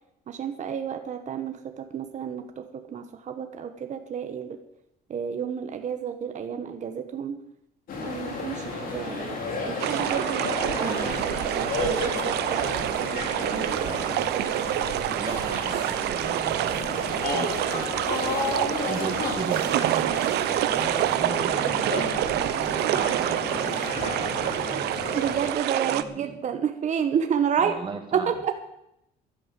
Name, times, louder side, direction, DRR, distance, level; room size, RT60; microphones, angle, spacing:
voice 1, 0.3-4.6 5.1-7.4 8.0-9.4 9.6-10.5 10.8-11.1 11.5-12.7 13.0-13.9 25.1-27.7 28.1-28.5, right 8 dB, 45° right, 6 dB, 1.3 m, -30 dB
sound 1, 7.9-25.5, left 3 dB, 55° left, 3.9 m, -32 dB
sound 2, 9.8-26.0, right 14 dB, 75° right, 0.8 m, -27 dB
voice 2, 10.8-11.3 13.8-14.2 15.1-18.0 18.9-20.1 20.7-24.9 25.8-26.3 27.6-28.3, right 4 dB, 30° right, 4 dB, 2.2 m, -37 dB
12.0 x 11.0 x 7.7 m, 0.82 s
cardioid pair, 110°, 17 cm